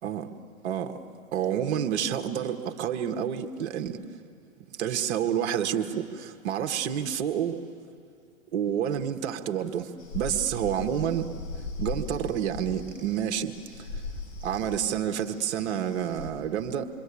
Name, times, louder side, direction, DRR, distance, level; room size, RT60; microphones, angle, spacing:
voice 1, 0.6-1.0 1.3-4.0 4.7-7.6 8.5-11.3 11.8-14.0 14.4-16.9, right 9 dB, 55° right, 6 dB, 1.7 m, -29 dB
sound 1, 10.0-16.3, left 3 dB, 50° left, 5.1 m, -39 dB
27.5 x 24.0 x 8.6 m, 2.4 s
hypercardioid pair, 110°, 40 cm